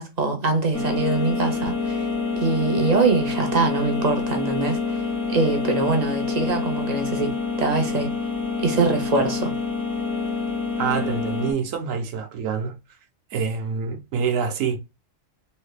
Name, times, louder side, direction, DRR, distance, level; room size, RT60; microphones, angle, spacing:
voice 1, 0.0-2.1 2.4-5.0 5.3-7.3 7.6-8.1 8.6-9.5, right 3 dB, 40° right, 0.7 m, -23 dB
sound 1, 0.7-11.5, left 4 dB, 45° left, 1.4 m, -27 dB
voice 2, 10.8-12.8 13.3-14.8, right 6 dB, 90° right, 1.1 m, -26 dB
3.2 x 3.2 x 2.3 m
omnidirectional pair, 1.3 m